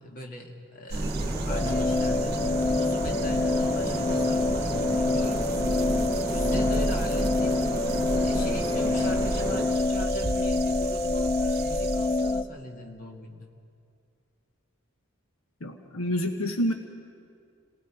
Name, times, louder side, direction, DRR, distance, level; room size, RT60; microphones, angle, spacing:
voice 1, 0.0-2.4 2.8-5.6 6.3-7.6 8.2-13.5, left 1 dB, 40° left, 1 dB, 2.0 m, -40 dB
sound 1, 0.9-9.6, right 1 dB, 20° right, 6.3 m, -33 dB
sound 2, 0.9-12.4, right 3 dB, 50° right, 0.7 m, -33 dB
sound 3, 1.5-12.4, left 3 dB, 20° left, 0.4 m, -27 dB
voice 2, 15.6-16.7, equal, 85° left, 5 dB, 1.2 m, -28 dB
28.5 x 19.0 x 4.8 m, 2.2 s
head